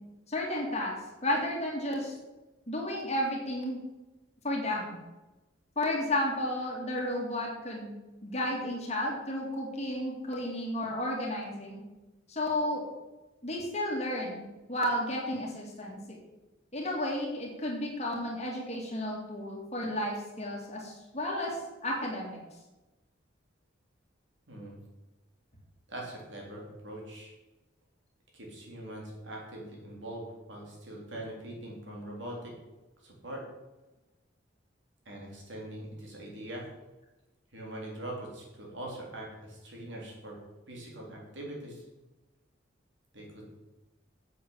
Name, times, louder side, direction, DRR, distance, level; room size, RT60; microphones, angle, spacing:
voice 1, 0.3-1.0 1.2-2.1 2.7-3.8 4.4-5.0 5.8-11.8 12.3-12.8 13.4-16.2 16.7-22.4, left 1 dB, 35° left, -1 dB, 2.5 m, -32 dB
voice 2, 25.9-27.3 28.3-32.5 33.0-33.4 35.1-36.7 37.5-40.4 40.7-41.8 43.1-43.6, right 1 dB, 65° right, -2 dB, 3.6 m, -42 dB
7.9 x 7.8 x 7.1 m, 1.1 s
head